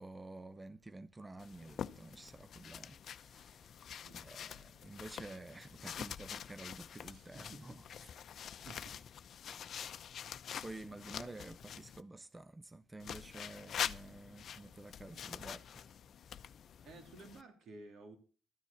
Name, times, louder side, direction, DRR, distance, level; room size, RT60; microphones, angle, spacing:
voice 1, 0.0-3.8 4.2-7.9 8.2-8.3 9.5-9.7 10.6-15.9, right 2 dB, 20° right, 0.7 m, -51 dB
sound 1, 1.4-12.0 13.0-17.4, left 8 dB, 60° left, 0.6 m, -46 dB
voice 2, 7.1-7.8 8.6-8.9 9.6-9.7 16.8-18.2, right 2 dB, 65° right, 3.3 m, -54 dB
13.0 x 9.8 x 7.0 m
cardioid pair, 90°, 0 cm